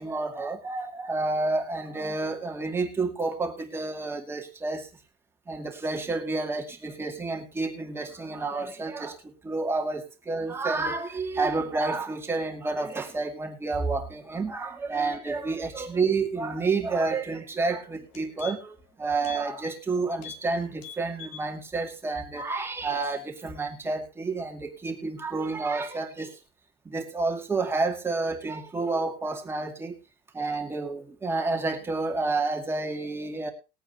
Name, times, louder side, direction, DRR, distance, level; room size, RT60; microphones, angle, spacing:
voice 1, 0.0-4.9 5.5-9.1 9.4-26.3 26.9-30.0 30.3-33.5, right 3 dB, 10° right, 3 dB, 2.2 m, -29 dB
sound 1, 17.5-17.6 18.0-18.8 19.2-19.4 19.7-19.9 20.2-20.5 20.7-21.5 21.9-22.0, left 8 dB, 85° left, 3.5 m, -43 dB
20.5 x 9.0 x 2.9 m, 0.30 s
cardioid pair, 170°, 21 cm